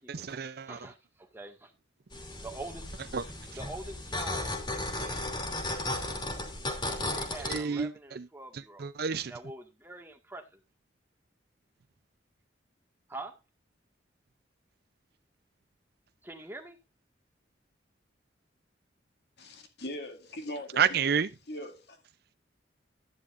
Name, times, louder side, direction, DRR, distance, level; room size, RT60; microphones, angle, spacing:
voice 1, 0.1-0.9 3.1-3.2 7.4-8.3 8.5-9.3 20.8-21.3, right 6 dB, 55° right, 0.5 m, -30 dB
voice 2, 0.6-1.7 2.4-2.9 3.5-5.3 7.0-8.9 9.3-10.6 13.1-13.4 16.2-16.8, right 2 dB, 10° right, 1.7 m, -45 dB
sound 1, 2.1-7.6, left 2 dB, 25° left, 2.7 m, -35 dB
voice 3, 19.4-20.9 21.5-22.0, left 1 dB, 60° left, 2.2 m, -40 dB
12.0 x 10.0 x 2.5 m
head